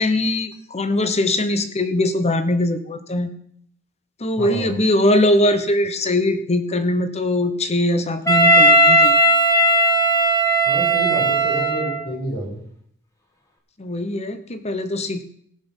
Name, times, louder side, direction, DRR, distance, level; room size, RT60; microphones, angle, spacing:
voice 1, 0.0-3.3 4.2-9.3 13.8-15.2, left 1 dB, 30° left, 10 dB, 1.0 m, -21 dB
voice 2, 4.4-4.8 10.6-12.6, right 1 dB, 70° left, -2 dB, 5.1 m, -28 dB
Wind instrument woodwind instrument, 8.3-12.1, right 1 dB, 15° left, 1.7 m, -16 dB
18.0 x 6.1 x 5.5 m, 0.66 s
head